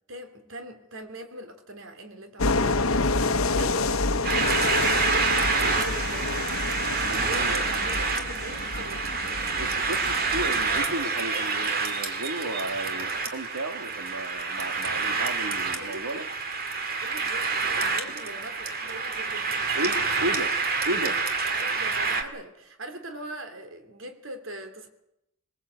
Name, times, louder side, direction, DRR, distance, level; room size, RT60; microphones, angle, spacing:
voice 1, 0.1-6.5 6.9-9.4 15.7-16.3 17.0-19.7 21.4-24.9, right 1 dB, 65° right, 3.0 m, -41 dB
sound 1, 2.4-10.8, left 3 dB, 75° left, 1.0 m, -28 dB
sound 2, 4.2-22.2, right 4 dB, 45° right, 2.2 m, -28 dB
voice 2, 9.6-16.3 19.7-20.5 20.8-21.2, right 1 dB, 85° right, 1.9 m, -34 dB
22.0 x 21.5 x 8.1 m
head